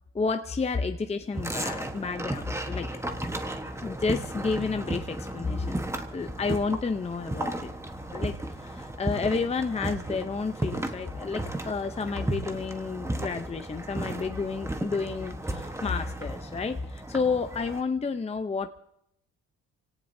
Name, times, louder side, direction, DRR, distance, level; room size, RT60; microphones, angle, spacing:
voice 1, 0.1-2.9 3.8-5.8 6.1-7.7 8.1-18.8, left 4 dB, 20° left, 7 dB, 0.7 m, -30 dB
sound 1, 1.3-17.8, right 1 dB, 10° right, 1.2 m, -35 dB
26.0 x 17.5 x 2.7 m, 0.77 s
cardioid pair, 90°, 30 cm